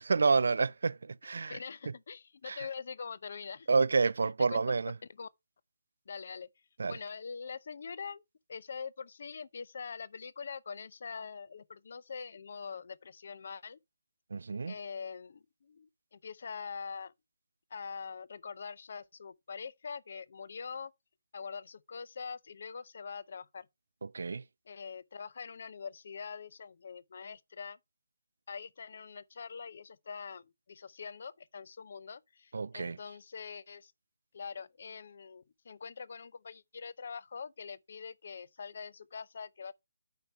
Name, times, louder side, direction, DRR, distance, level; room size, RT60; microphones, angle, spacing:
voice 1, 0.0-1.6 2.5-2.6 3.7-4.9 6.8-7.0 14.3-14.7 24.0-24.4 32.5-33.0, right 4 dB, 70° right, 0.4 m, -29 dB
voice 2, 1.5-3.7 4.5-4.6 5.2-5.3 6.1-6.5 6.9-8.2 8.5-13.8 14.7-17.1 17.7-20.9 21.3-23.7 24.7-27.8 28.5-33.9 34.3-39.7, left 5 dB, 50° left, 0.6 m, -44 dB
9.1 x 5.1 x 4.3 m
hypercardioid pair, 165°, 0 cm